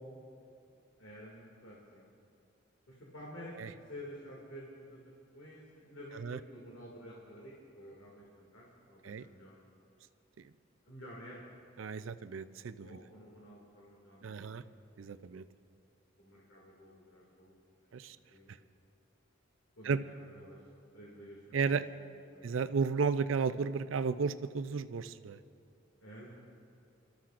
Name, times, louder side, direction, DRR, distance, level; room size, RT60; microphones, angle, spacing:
voice 1, 1.0-2.0 2.9-5.0 5.3-9.6 10.9-11.5 12.8-14.5 16.2-18.5 19.8-20.6 20.9-22.1 22.3-22.5 26.0-26.3, equal, 80° left, -4 dB, 2.3 m, -51 dB
voice 2, 11.8-13.0 14.2-14.6 15.0-15.4 17.9-18.2 19.8-20.0 21.5-21.8 22.4-25.4, right 5 dB, 80° right, 12 dB, 0.5 m, -33 dB
29.5 x 13.0 x 2.5 m, 2.5 s
head